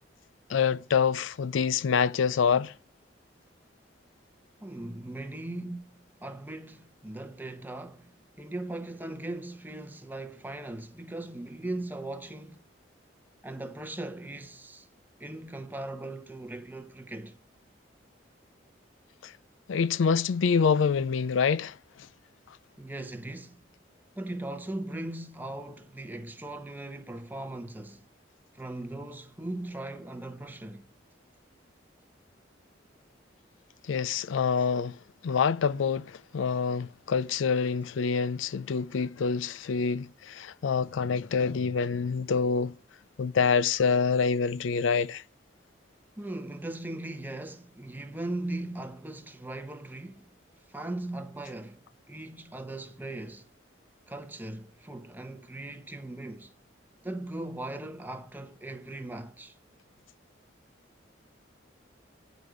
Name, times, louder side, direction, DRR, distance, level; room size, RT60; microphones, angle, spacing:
voice 1, 0.5-2.7 19.2-19.3 19.7-21.8 33.8-42.7 43.2-45.2, left 6 dB, 85° left, 0.4 m, -26 dB
voice 2, 4.6-12.6 13.4-14.9 15.2-17.4 22.8-23.7 24.2-28.0 28.5-30.9 46.2-50.3 50.7-53.5 54.1-56.5 57.0-59.6, right 1 dB, 10° right, 0.8 m, -39 dB
9.5 x 5.1 x 6.2 m
head